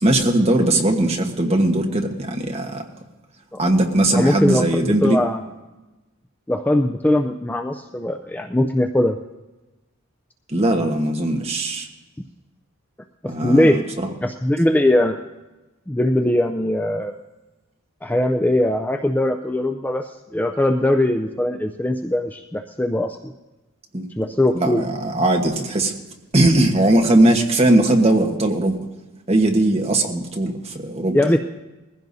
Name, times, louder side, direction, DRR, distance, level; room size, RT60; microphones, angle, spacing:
voice 1, 0.0-2.9 3.6-5.2 10.5-11.9 13.2-14.1 23.9-24.0 24.5-25.9 26.3-28.7 29.3-31.2, right 1 dB, 30° right, 2 dB, 1.3 m, -19 dB
voice 2, 4.1-5.4 6.5-9.2 13.4-13.8 14.2-15.2 15.9-17.1 18.0-23.3 24.2-24.9 31.1-31.4, left 1 dB, 10° left, 5 dB, 0.4 m, -20 dB
21.0 x 15.5 x 2.7 m, 1.1 s
head